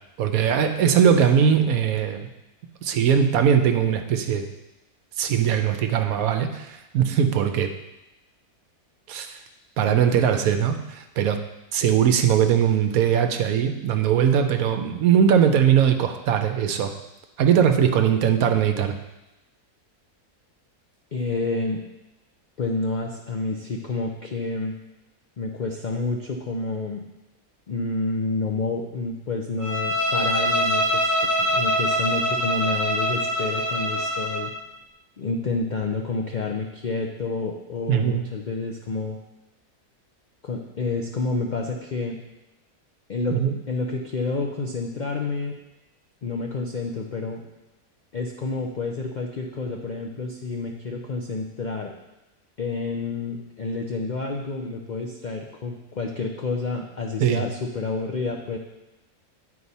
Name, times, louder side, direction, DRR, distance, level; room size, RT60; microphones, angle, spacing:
voice 1, 0.2-2.3 2.8-4.5 5.2-7.7 9.1-9.4 9.8-11.4 11.7-16.9 17.4-19.0 37.9-38.2 43.3-43.5 57.2-57.4, right 8 dB, 75° right, 7 dB, 1.0 m, -20 dB
voice 2, 21.1-21.8 22.6-24.7 25.4-27.1 27.7-34.5 35.2-39.2 40.4-42.2 43.1-43.4 43.7-45.5 46.2-47.4 48.1-51.9 52.6-58.6, left 3 dB, 70° left, 1 dB, 0.4 m, -29 dB
Bowed string instrument, 29.6-34.5, equal, 40° right, 1.0 m, -24 dB
9.6 x 4.7 x 4.1 m, 0.97 s
omnidirectional pair, 1.6 m